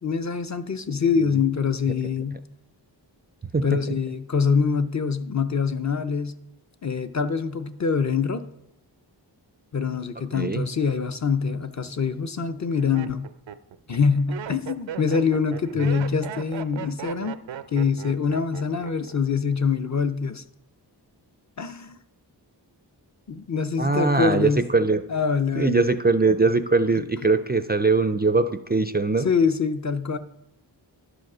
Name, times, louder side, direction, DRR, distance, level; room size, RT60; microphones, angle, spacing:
voice 1, 0.0-2.4 3.6-6.3 6.8-8.4 9.7-13.3 13.9-17.4 17.7-20.4 21.6-22.0 23.3-24.6 25.1-25.8 26.9-27.0 29.2-30.2, left 5 dB, 40° left, 9 dB, 0.5 m, -24 dB
voice 2, 10.3-10.7 23.8-25.0 25.6-29.3, right 3 dB, 25° right, 10 dB, 0.3 m, -21 dB
Laughter, 11.5-11.9 12.6-19.2 19.4-20.0, right 9 dB, 90° right, 0.5 m, -37 dB
11.0 x 5.1 x 6.0 m, 0.90 s
wide cardioid pair, 90°, 43 cm